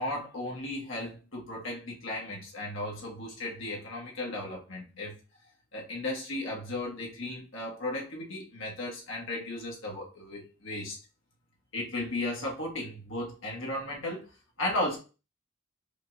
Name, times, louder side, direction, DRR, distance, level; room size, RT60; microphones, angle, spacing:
voice 1, 0.0-5.1 5.7-11.0 11.7-14.3 14.6-15.0, left 1 dB, 65° left, 1.6 m, -35 dB
5.2 x 2.6 x 2.7 m
head